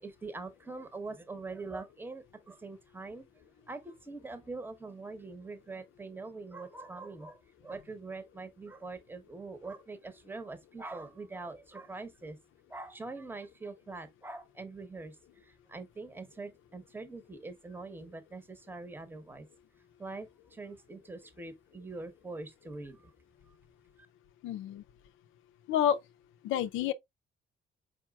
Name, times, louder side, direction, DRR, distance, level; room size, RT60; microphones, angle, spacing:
voice 1, 0.0-12.4 12.7-19.5 20.0-23.1, right 3 dB, 10° right, 0.8 m, -44 dB
voice 2, 24.4-24.8 25.7-26.0 26.4-26.9, left 10 dB, 85° left, 0.4 m, -29 dB
4.9 x 4.5 x 2.3 m
cardioid pair, 90°, 20 cm